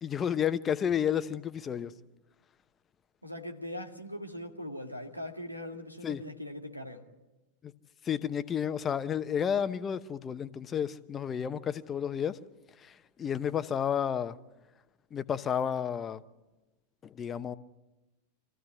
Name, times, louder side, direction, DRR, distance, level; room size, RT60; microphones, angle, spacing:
voice 1, 0.0-1.9 6.0-6.2 8.0-12.4 12.8-14.3 15.1-16.2 17.0-17.6, left 8 dB, 25° left, 0.9 m, -31 dB
voice 2, 3.2-7.1, left 1 dB, 90° right, 2.0 m, -41 dB
25.0 x 15.0 x 9.3 m
figure-of-eight pair, 90°, 0 cm